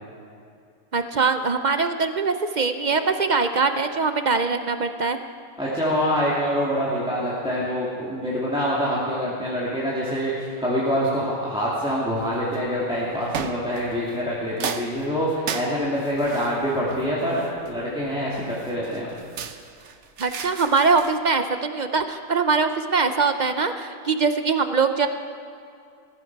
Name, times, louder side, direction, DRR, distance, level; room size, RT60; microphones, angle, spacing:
voice 1, 0.9-5.2 20.2-25.1, right 4 dB, 45° right, 8 dB, 0.7 m, -22 dB
voice 2, 5.6-19.2, equal, 5° right, -7 dB, 2.3 m, -25 dB
sound 1, 12.2-12.6 13.3-14.3 14.6-17.9 18.6-21.2, right 6 dB, 75° right, 1.2 m, -35 dB
19.5 x 15.0 x 4.6 m, 2.4 s
omnidirectional pair, 1.2 m